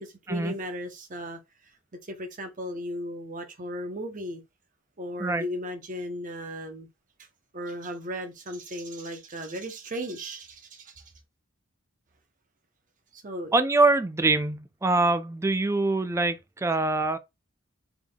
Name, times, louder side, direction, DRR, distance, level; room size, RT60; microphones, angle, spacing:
voice 1, 0.0-1.4 2.0-4.4 5.0-6.9 7.5-11.0 13.1-13.5, equal, 40° right, 0.8 m, -36 dB
voice 2, 13.5-17.2, right 2 dB, 15° right, 0.4 m, -24 dB
3.6 x 3.4 x 2.3 m
head